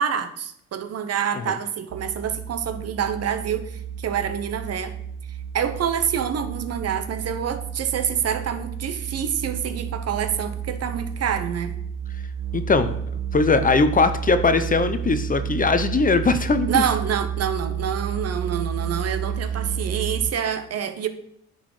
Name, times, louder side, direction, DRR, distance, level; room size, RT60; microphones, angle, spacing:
voice 1, 0.0-4.9 5.5-11.7 16.7-21.1, right 8 dB, 55° right, 9 dB, 0.8 m, -27 dB
sound 1, 1.9-20.3, right 8 dB, 85° right, 0.6 m, -31 dB
voice 2, 12.5-13.0 13.3-16.8, left 4 dB, 30° left, 10 dB, 0.6 m, -20 dB
9.9 x 4.0 x 4.8 m, 0.71 s
cardioid pair, 90°, 30 cm